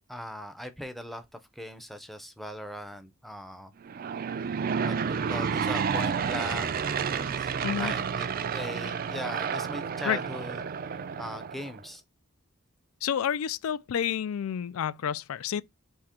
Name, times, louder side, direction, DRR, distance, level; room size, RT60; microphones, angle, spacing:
voice 1, 0.1-1.2 1.6-3.7 4.8-7.5 7.8-10.6 11.2-12.0, equal, ahead, 0.5 m, -39 dB
Aircraft / Engine, 3.8-11.8, right 6 dB, 45° right, 0.4 m, -30 dB
voice 2, 7.6-7.9 10.0-10.2 13.0-15.6, left 8 dB, 80° left, 0.3 m, -29 dB
3.7 x 2.8 x 4.2 m
head